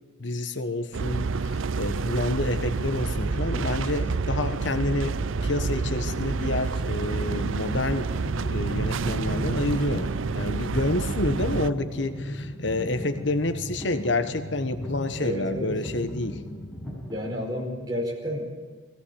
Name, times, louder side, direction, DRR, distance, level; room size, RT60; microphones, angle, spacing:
voice 1, 0.2-5.1 5.4-8.1 8.4-16.4, left 2 dB, 65° left, 9 dB, 1.2 m, -28 dB
sound 1, 0.9-11.7, right 4 dB, 85° right, 0.5 m, -28 dB
sound 2, 2.7-17.0, equal, 45° left, 2.1 m, -38 dB
sound 3, 9.5-17.5, left 1 dB, 5° left, 6.0 m, -42 dB
voice 2, 15.2-15.7 17.1-18.4, equal, 20° right, -1 dB, 5.0 m, -31 dB
20.5 x 17.0 x 8.4 m, 1.5 s
head